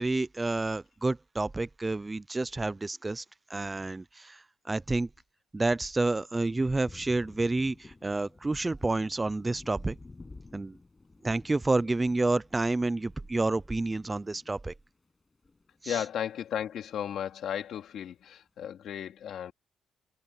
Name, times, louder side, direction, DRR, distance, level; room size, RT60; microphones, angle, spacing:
voice 1, 0.0-3.2 3.5-5.1 5.5-10.0 10.5-10.8 11.2-14.7 15.8-16.0, right 2 dB, 15° right, 0.4 m, -29 dB
Thunder, 6.4-16.2 16.5-17.6, left 3 dB, 20° left, 6.6 m, -53 dB
voice 2, 15.9-19.5, left 9 dB, 70° left, 2.9 m, -35 dB
cardioid pair, 120°, 0 cm